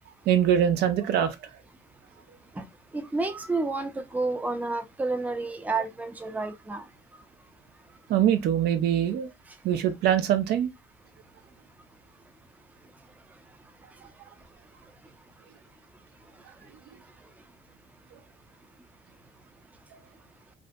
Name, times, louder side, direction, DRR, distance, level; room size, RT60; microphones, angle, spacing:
voice 1, 0.3-1.3 8.1-9.3 9.6-10.7, right 10 dB, 75° right, 0.5 m, -23 dB
voice 2, 2.5-7.3 7.8-8.0 9.5-9.7 12.8-15.7 16.1-17.4, right 3 dB, 10° right, 0.4 m, -33 dB
2.6 x 2.1 x 2.5 m
cardioid pair, 110°, 17 cm